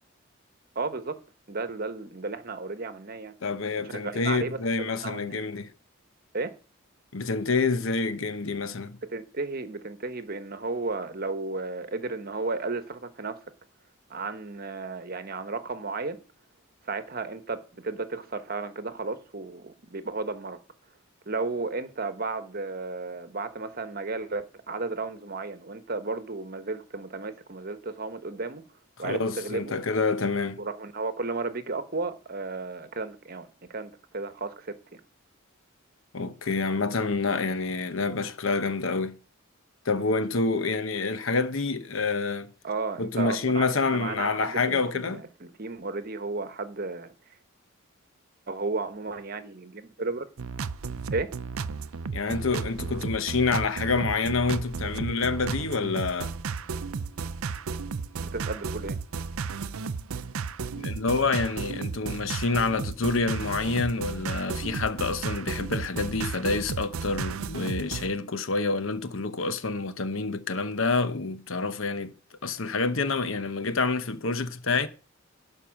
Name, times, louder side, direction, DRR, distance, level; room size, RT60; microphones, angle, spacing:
voice 1, 0.7-1.2 1.5-3.3 3.8-5.4 6.3-6.5 9.1-13.4 14.1-16.2 16.8-20.6 21.3-28.6 29.0-29.7 30.6-35.0 42.6-47.1 48.5-50.3 51.1-51.3 58.2-59.0, right 3 dB, 45° right, 1.0 m, -33 dB
voice 2, 3.4-5.7 7.1-9.0 29.0-30.6 36.1-39.1 39.8-42.5 43.0-45.2 52.1-56.3 60.7-72.1 72.4-74.9, left 3 dB, 70° left, 0.9 m, -27 dB
sound 1, 50.4-68.1, right 5 dB, 80° right, 0.6 m, -34 dB
12.0 x 5.4 x 6.3 m
head